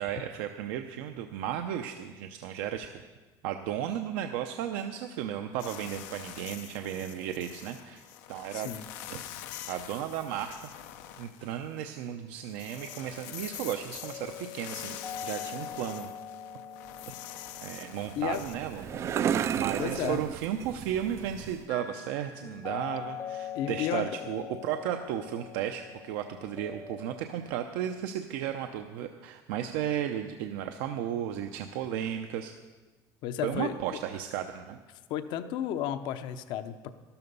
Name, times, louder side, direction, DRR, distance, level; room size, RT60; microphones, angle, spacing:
voice 1, 0.0-2.9 3.4-8.0 8.3-8.7 9.1-9.2 9.7-10.6 11.2-16.1 17.6-18.9 19.6-32.5 33.4-34.8, right 10 dB, 75° right, 6 dB, 0.7 m, -34 dB
sound 1, 5.6-12.0 12.3-20.0, left 12 dB, 90° left, 0.8 m, -45 dB
voice 2, 8.5-8.8 18.2-18.4 19.8-20.2 23.5-24.1 33.2-33.7 35.1-36.9, left 10 dB, 60° left, 11 dB, 0.8 m, -32 dB
sound 2, 12.7-27.2, left 8 dB, 25° left, 0.7 m, -44 dB
sound 3, 18.1-21.7, right 9 dB, 30° right, 0.3 m, -33 dB
13.0 x 12.5 x 5.4 m, 1.3 s
cardioid pair, 150°, 9 cm